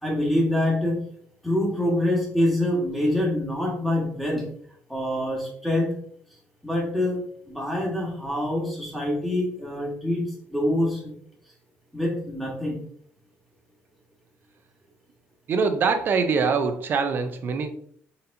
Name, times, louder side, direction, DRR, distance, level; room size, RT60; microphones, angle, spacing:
voice 1, 0.0-1.0 1.4-4.4 4.9-5.9 6.6-7.2 7.5-10.2 10.5-11.1 11.9-12.8, left 1 dB, ahead, -2 dB, 1.3 m, -25 dB
voice 2, 15.5-17.7, right 5 dB, 40° right, 8 dB, 0.5 m, -23 dB
4.1 x 4.1 x 2.6 m, 0.62 s
cardioid pair, 155°, 5 cm